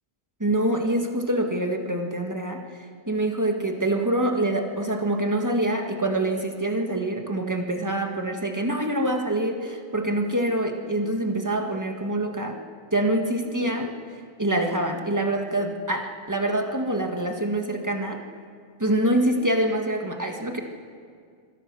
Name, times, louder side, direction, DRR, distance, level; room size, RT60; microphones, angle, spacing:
voice 1, 0.4-2.6 3.1-12.6 12.9-13.9 14.4-18.2 18.8-20.6, right 1 dB, 15° right, 3 dB, 1.7 m, -25 dB
24.5 x 17.0 x 6.2 m, 2.1 s
omnidirectional pair, 1.3 m